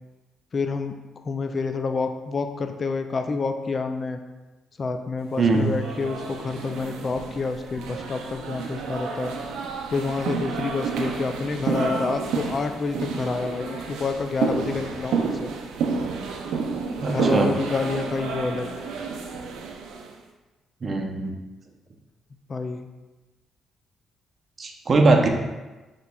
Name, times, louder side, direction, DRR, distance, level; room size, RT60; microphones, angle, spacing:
voice 1, 0.5-1.0 1.2-4.2 4.8-9.3 9.9-15.5 17.1-18.7 22.5-22.9, left 4 dB, 40° left, 7 dB, 0.3 m, -28 dB
voice 2, 5.4-5.7 17.0-17.5 20.8-21.3 24.6-25.3, right 3 dB, 40° right, 2 dB, 0.6 m, -20 dB
sound 1, 5.4-20.1, right 5 dB, 85° right, 0.4 m, -30 dB
6.6 x 2.9 x 2.3 m, 1.2 s
cardioid pair, 90°, 0 cm